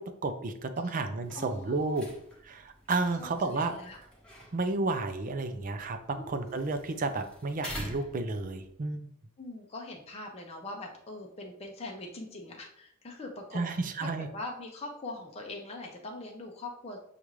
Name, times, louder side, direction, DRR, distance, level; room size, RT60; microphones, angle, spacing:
voice 1, 0.0-2.1 2.4-3.7 4.5-9.1 13.5-14.3, right 3 dB, 40° right, 8 dB, 0.5 m, -32 dB
sound 1, 1.2-8.7, equal, 5° left, 1.0 m, -47 dB
voice 2, 1.3-2.0 3.2-4.0 6.1-6.7 9.4-17.0, left 2 dB, 30° left, 0 dB, 0.6 m, -42 dB
6.8 x 2.4 x 3.1 m, 0.71 s
head